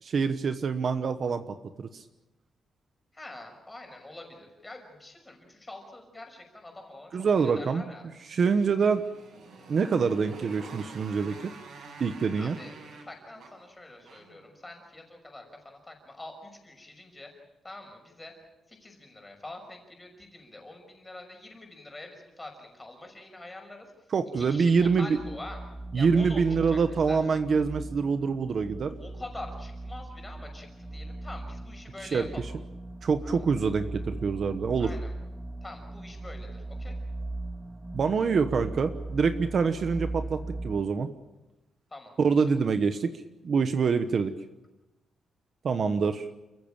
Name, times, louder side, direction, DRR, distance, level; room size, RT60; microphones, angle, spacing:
voice 1, 0.0-1.4 1.8-2.0 7.1-7.9 8.3-9.0 9.7-11.5 12.0-12.6 24.1-25.1 25.9-29.0 32.1-32.3 33.0-34.9 37.9-41.1 42.2-43.1 43.4-44.3 45.6-46.3, right 5 dB, 45° right, 9 dB, 1.1 m, -25 dB
voice 2, 3.1-7.1 7.4-8.1 12.4-12.7 13.0-17.3 17.6-18.3 18.7-23.9 24.4-25.6 25.9-26.8 27.1-27.2 29.0-32.5 33.2-33.4 34.8-35.1 35.6-36.9 41.9-42.1, left 2 dB, 15° left, 3 dB, 5.8 m, -45 dB
Motorcycle, 8.1-14.5, right 3 dB, 65° right, 6.8 m, -48 dB
sound 1, 24.8-40.8, right 2 dB, 10° right, 0.8 m, -39 dB
29.0 x 15.5 x 8.9 m, 1.0 s
wide cardioid pair, 160°, 0 cm